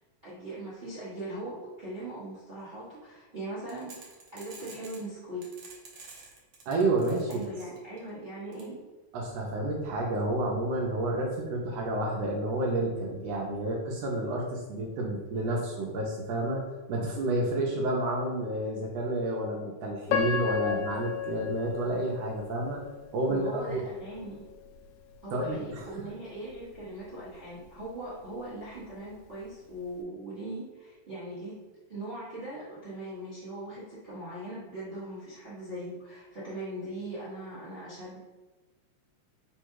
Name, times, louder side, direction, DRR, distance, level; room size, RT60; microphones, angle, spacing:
voice 1, 0.2-5.5 7.3-8.8 23.2-24.5 25.2-31.6 31.9-38.2, right 1 dB, 50° right, -10 dB, 0.6 m, -40 dB
sound 1, 3.7-5.0 5.4-8.0 8.5-8.6, right 4 dB, 90° right, 1.0 m, -48 dB
voice 2, 6.7-7.4 9.1-16.6 16.9-22.8 23.1-23.8 25.3-25.9, right 1 dB, 75° right, -1 dB, 1.6 m, -30 dB
Piano, 20.1-23.1 23.7-23.8 24.4-24.7, left 8 dB, 85° left, 1.3 m, -32 dB
4.6 x 2.3 x 4.6 m, 1.2 s
omnidirectional pair, 3.4 m